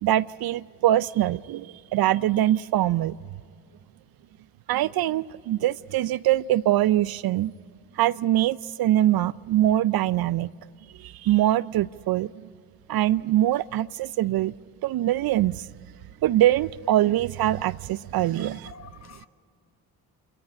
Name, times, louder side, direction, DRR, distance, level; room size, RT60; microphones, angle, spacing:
voice 1, 0.0-3.2 4.7-7.5 8.0-10.5 11.0-12.3 12.9-14.5 14.8-15.7 16.2-18.7, right 13 dB, 60° right, 17 dB, 0.5 m, -23 dB
voice 2, 18.3-19.3, left 6 dB, 40° left, 9 dB, 1.4 m, -46 dB
27.0 x 14.0 x 8.9 m, 2.2 s
supercardioid pair, 60°, 42 cm